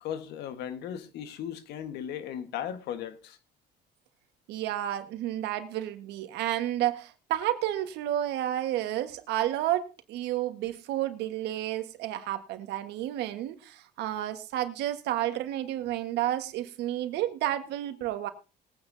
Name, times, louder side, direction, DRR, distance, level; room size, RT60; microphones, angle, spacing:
voice 1, 0.0-3.4, left 9 dB, 80° left, 1.4 m, -37 dB
voice 2, 4.5-18.3, right 13 dB, 85° right, 1.5 m, -31 dB
21.0 x 9.2 x 2.7 m
cardioid pair, 110°, 17 cm